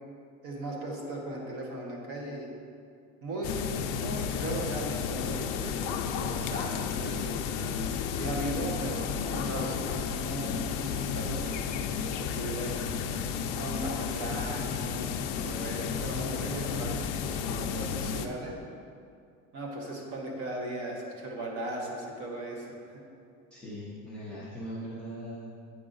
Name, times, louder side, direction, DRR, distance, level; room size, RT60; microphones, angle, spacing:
voice 1, 0.4-2.5 3.2-3.6 3.9-7.3 8.1-10.6 11.0-11.7 12.2-12.8 13.6-17.1 17.3-18.6 19.5-23.1, right 1 dB, 35° right, 0 dB, 0.9 m, -37 dB
sound 1, 3.4-18.3, left 6 dB, 60° left, 0.5 m, -32 dB
voice 2, 23.5-25.6, equal, 5° left, -9 dB, 0.5 m, -40 dB
8.6 x 4.8 x 3.8 m, 2.4 s
cardioid pair, 175°, 40 cm